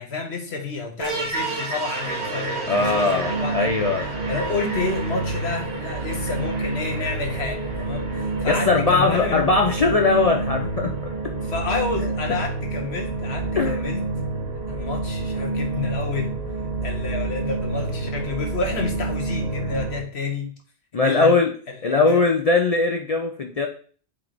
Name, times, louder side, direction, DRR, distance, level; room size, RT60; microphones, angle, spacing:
voice 1, 0.0-3.7 4.3-9.5 11.5-14.0 14.7-16.3 16.8-20.5 21.0-21.4 21.7-22.2, left 4 dB, 80° left, 3 dB, 1.4 m, -29 dB
sound 1, 1.0-20.0, right 3 dB, 85° right, 2.0 m, -28 dB
voice 2, 2.7-4.1 8.5-11.1 13.6-13.8 20.9-21.5 21.8-23.7, left 3 dB, 45° left, 3 dB, 0.5 m, -20 dB
7.5 x 3.2 x 3.9 m, 0.43 s
omnidirectional pair, 1.1 m